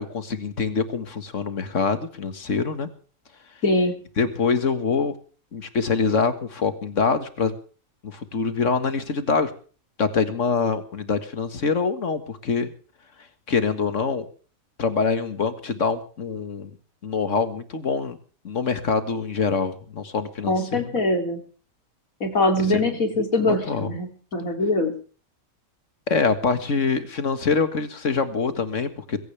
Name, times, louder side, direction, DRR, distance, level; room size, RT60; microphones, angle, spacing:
voice 1, 0.0-2.9 4.2-5.1 5.5-7.5 8.0-9.5 10.0-12.7 13.5-14.3 14.8-16.7 17.0-18.2 18.4-21.0 22.7-22.9 23.5-23.9 26.1-29.2, left 5 dB, 65° left, 10 dB, 2.1 m, -25 dB
voice 2, 3.6-3.9 20.5-21.4 22.2-24.9, left 2 dB, 90° left, 5 dB, 3.6 m, -22 dB
21.5 x 17.0 x 3.4 m, 0.40 s
omnidirectional pair, 1.4 m